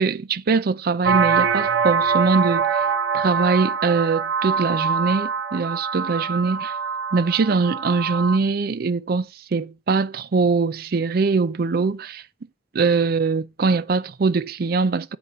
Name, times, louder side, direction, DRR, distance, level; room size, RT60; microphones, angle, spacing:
voice 1, 0.0-2.8 3.1-6.7 7.1-12.2 12.7-15.2, right 4 dB, 55° right, 0.4 m, -22 dB
sound 1, 1.0-8.4, right 6 dB, 90° right, 1.2 m, -24 dB
8.1 x 5.7 x 4.9 m
head